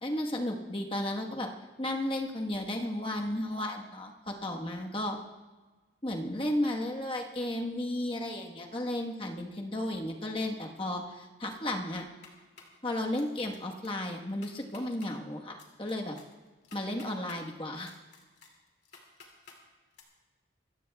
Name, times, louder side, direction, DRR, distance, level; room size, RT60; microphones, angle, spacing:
voice 1, 0.0-1.5 1.8-5.2 6.0-12.1 12.8-16.1 16.7-17.9, left 1 dB, 30° left, 1 dB, 1.3 m, -34 dB
sound 1, 12.0-12.8 13.2-13.6 13.8-13.9 14.3-15.1 15.6-17.4 17.8-19.6 19.9-20.0, left 4 dB, 65° left, 2.6 m, -54 dB
26.0 x 14.5 x 2.3 m, 1.3 s
head